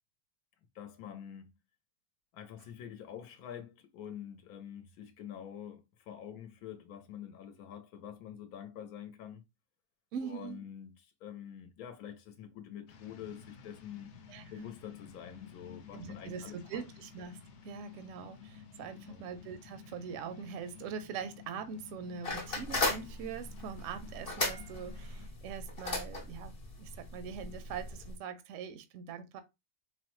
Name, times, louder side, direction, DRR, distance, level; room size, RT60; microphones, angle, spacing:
voice 1, 0.7-1.6 2.3-9.4 10.2-14.1 14.5-16.6 18.9-19.3, left 9 dB, 80° left, 1.1 m, -46 dB
voice 2, 10.1-10.6 14.3-14.7 15.9-29.4, right 6 dB, 70° right, 0.8 m, -43 dB
sound 1, 12.9-25.3, left 7 dB, 60° left, 0.8 m, -53 dB
sound 2, 22.2-28.2, left 2 dB, 30° left, 0.7 m, -37 dB
4.1 x 2.1 x 3.0 m
omnidirectional pair, 1.6 m